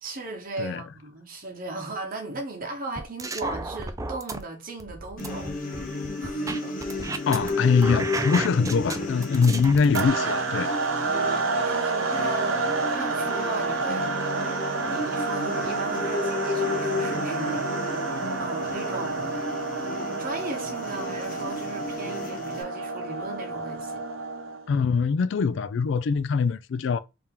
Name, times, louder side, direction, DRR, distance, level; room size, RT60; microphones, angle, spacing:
voice 1, 0.0-5.6 6.2-6.8 7.3-7.4 11.1-14.5 14.8-18.1 18.4-19.4 20.2-24.0, right 2 dB, 45° right, 1.1 m, -37 dB
sound 1, 3.0-4.4 4.8-7.5 7.8-10.1, right 3 dB, 15° right, 0.4 m, -33 dB
sound 2, 5.2-22.6, left 3 dB, 45° left, 1.1 m, -33 dB
voice 2, 7.3-10.7 24.7-27.0, left 5 dB, 65° left, 0.3 m, -23 dB
sound 3, 9.9-24.7, right 3 dB, 80° right, 0.7 m, -29 dB
3.4 x 2.9 x 3.6 m
head